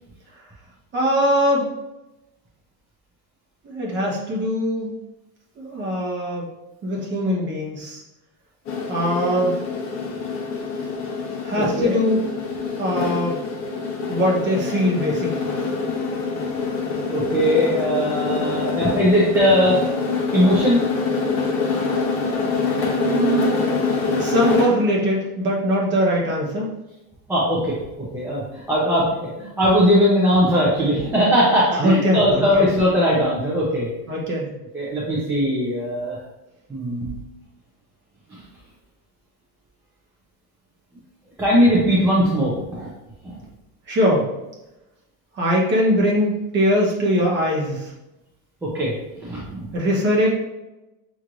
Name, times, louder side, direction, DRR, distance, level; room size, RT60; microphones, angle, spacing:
voice 1, 0.9-1.7 3.6-4.9 5.6-6.5 6.8-8.0 8.9-9.5 11.4-12.2 12.8-13.4 14.1-15.6 23.0-23.6 24.2-26.7 31.8-32.6 34.1-34.6 43.9-44.3 45.3-47.9 49.7-50.3, equal, 25° right, -3 dB, 1.1 m, -21 dB
sound 1, 8.6-24.9, left 4 dB, 30° left, 1.0 m, -25 dB
voice 2, 11.6-11.9 17.1-19.8 20.3-20.8 27.3-33.9 34.7-36.2 36.7-37.2 38.3-38.4 41.4-42.9 43.2-43.3 48.6-49.7, equal, 5° right, -7 dB, 0.4 m, -20 dB
5.6 x 3.1 x 2.5 m, 0.98 s
supercardioid pair, 145°, 45 cm